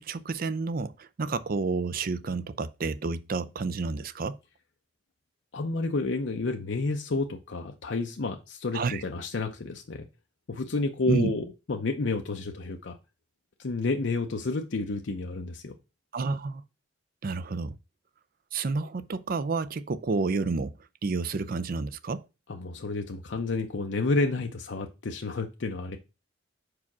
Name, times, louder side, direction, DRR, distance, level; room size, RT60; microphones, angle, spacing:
voice 1, 0.0-4.4 8.7-9.0 11.1-11.3 16.1-16.6 17.2-17.8 18.5-22.2, right 4 dB, 50° right, 0.5 m, -30 dB
voice 2, 5.5-10.1 10.5-13.0 13.6-15.7 22.5-26.0, left 3 dB, 65° left, 0.6 m, -30 dB
4.8 x 4.8 x 5.9 m
head